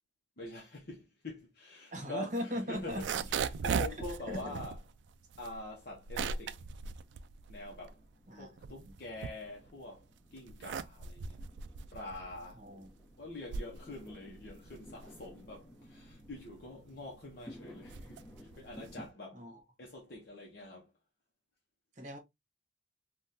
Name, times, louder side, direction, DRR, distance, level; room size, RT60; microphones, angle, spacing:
voice 1, 0.4-4.8 5.4-6.6 7.5-8.0 8.3-11.4 11.9-12.8 13.2-19.5 19.8-20.9, left 2 dB, 55° left, 0.7 m, -46 dB
voice 2, 1.9-3.1 4.3-4.6 8.3-8.5 8.9-9.0 12.5-12.9 19.3-19.6 22.0-22.2, equal, 40° right, 0.9 m, -39 dB
sound 1, 2.7-8.1 8.4-9.9 10.3-19.1, right 5 dB, 75° right, 0.3 m, -39 dB
Fireworks, 4.8-19.1, left 1 dB, 20° left, 0.9 m, -57 dB
3.6 x 2.3 x 2.6 m
head